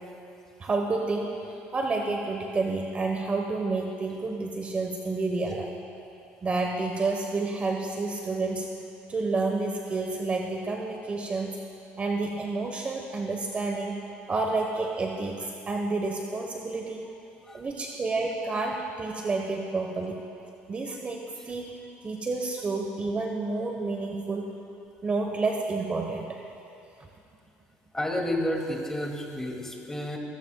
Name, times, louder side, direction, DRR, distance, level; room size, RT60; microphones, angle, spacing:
voice 1, 0.6-1.4 1.7-5.7 6.4-8.7 9.1-11.6 12.0-17.1 17.5-20.2 20.7-21.7 22.0-24.6 25.0-26.4, right 3 dB, 30° right, 2 dB, 1.2 m, -29 dB
voice 2, 27.9-30.2, left 1 dB, 10° left, 0 dB, 2.5 m, -31 dB
25.5 x 16.0 x 2.4 m, 2.7 s
cardioid pair, 100°, 4 cm